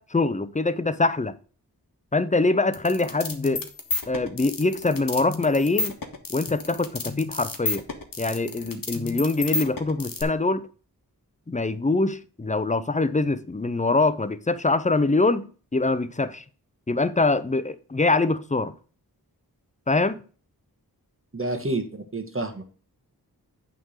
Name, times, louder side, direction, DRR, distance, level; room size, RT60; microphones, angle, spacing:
voice 1, 0.0-1.3 2.1-3.6 4.1-6.0 6.3-7.8 8.2-10.7 11.5-16.4 16.9-18.7 19.9-20.2, left 3 dB, 20° left, 0.6 m, -24 dB
sound 1, 2.7-10.2, left 4 dB, 60° left, 1.4 m, -31 dB
voice 2, 21.3-22.6, right 2 dB, 35° right, 1.4 m, -29 dB
8.5 x 3.7 x 6.5 m
wide cardioid pair, 55°, 38 cm